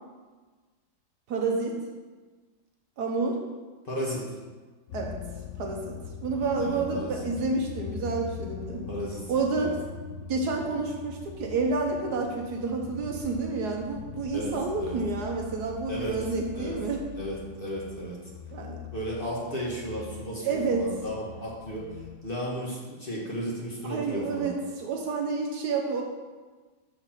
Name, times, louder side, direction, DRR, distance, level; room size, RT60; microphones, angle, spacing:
voice 1, 1.3-1.8 3.0-3.4 4.9-5.2 5.6-8.9 9.3-9.8 10.3-17.0 18.5-18.8 20.4-20.9 23.8-26.0, right 4 dB, 65° right, 1 dB, 1.3 m, -29 dB
voice 2, 3.8-4.2 6.6-7.2 8.9-9.2 9.6-9.7 14.3-14.5 14.8-15.0 15.9-16.2 16.5-16.8 17.2-18.2 18.9-21.8 22.2-24.5, equal, 30° left, -5 dB, 1.4 m, -34 dB
sound 1, 4.9-22.2, left 6 dB, 85° left, 0.6 m, -42 dB
6.6 x 4.6 x 5.8 m, 1.3 s
omnidirectional pair, 2.0 m